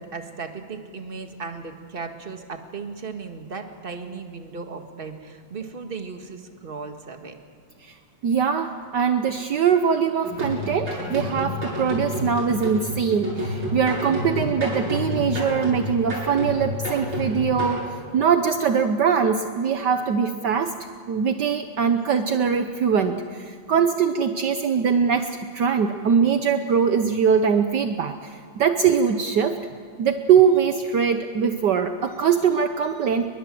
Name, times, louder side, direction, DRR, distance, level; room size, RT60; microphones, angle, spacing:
voice 1, 0.0-7.3, right 4 dB, 30° right, 5 dB, 2.0 m, -36 dB
voice 2, 8.2-20.8 21.1-29.6 30.0-33.3, right 7 dB, 65° right, 7 dB, 1.5 m, -22 dB
sound 1, 10.2-17.8, left 1 dB, 80° right, 8.8 m, -29 dB
28.5 x 22.5 x 7.7 m, 2.2 s
omnidirectional pair, 2.2 m